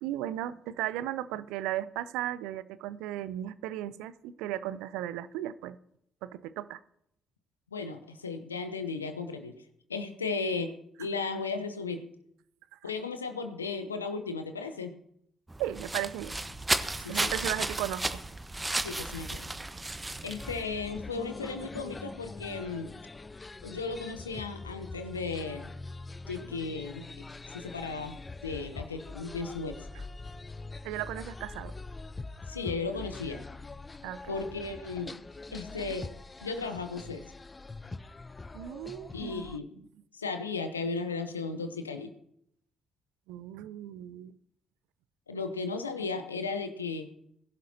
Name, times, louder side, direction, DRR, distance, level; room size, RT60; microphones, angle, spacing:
voice 1, 0.0-5.8 6.2-6.8 12.7-12.8 15.6-16.4 17.0-18.2 30.8-31.7 34.0-34.3 38.5-39.4 43.3-44.4, right 13 dB, 70° right, 16 dB, 0.5 m, -36 dB
voice 2, 7.7-9.6 9.9-12.1 12.8-14.9 17.0-17.6 18.8-19.5 20.2-22.9 23.6-25.7 26.3-27.1 27.5-29.8 32.5-33.4 34.3-35.2 35.5-36.1 36.4-37.2 39.1-39.7 40.1-42.1 45.3-47.1, left 4 dB, 90° left, 8 dB, 0.8 m, -35 dB
sound 1, 15.5-20.6, right 2 dB, 20° right, 1.1 m, -33 dB
sound 2, 20.4-39.6, left 3 dB, 25° left, 0.6 m, -44 dB
21.0 x 11.0 x 2.8 m, 0.74 s
figure-of-eight pair, 45°, 0 cm